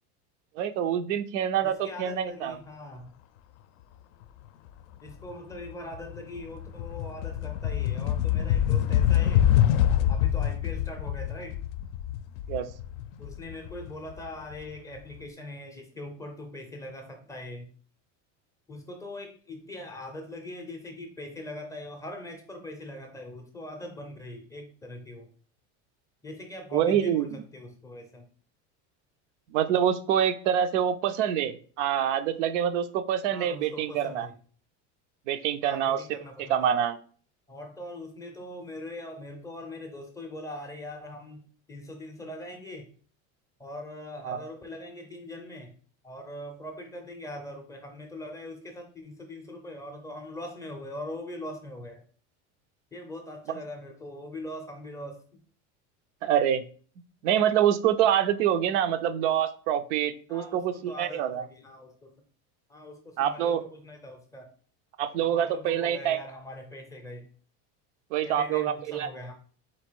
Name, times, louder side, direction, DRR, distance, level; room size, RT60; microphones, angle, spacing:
voice 1, 0.6-2.6 12.5-12.7 26.7-27.3 29.5-34.3 35.3-36.0 36.5-37.0 44.3-44.4 56.2-56.6 57.2-61.4 63.2-63.6 65.0-66.2 68.1-69.1, right 9 dB, 85° right, 10 dB, 0.6 m, -26 dB
voice 2, 1.6-3.1 5.0-9.5 10.1-11.6 13.2-17.7 18.7-25.3 26.2-28.3 33.3-34.3 35.6-36.7 37.5-42.9 43.6-45.7 46.0-52.0 52.9-55.4 60.3-62.1 62.7-64.5 65.2-67.3 68.2-69.3, left 1 dB, 10° left, 3 dB, 0.4 m, -41 dB
sound 1, 5.1-5.3 5.7-14.5, left 11 dB, 80° left, 0.5 m, -26 dB
4.3 x 2.5 x 4.5 m, 0.43 s
cardioid pair, 155°, 35 cm